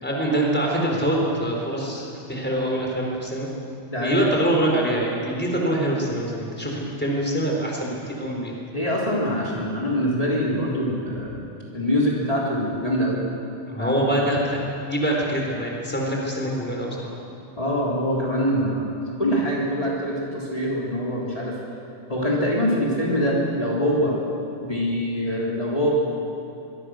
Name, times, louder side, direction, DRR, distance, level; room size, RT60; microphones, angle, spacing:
voice 1, 0.0-3.5 4.0-8.5 13.7-16.9, right 1 dB, 10° left, -1 dB, 4.3 m, -24 dB
voice 2, 3.9-4.3 8.7-11.3 11.7-13.2 13.8-14.0 17.6-18.9 19.2-21.6 22.1-24.2 24.6-25.9, equal, 30° left, -5 dB, 3.9 m, -24 dB
24.0 x 23.5 x 6.5 m, 2.8 s
omnidirectional pair, 1.3 m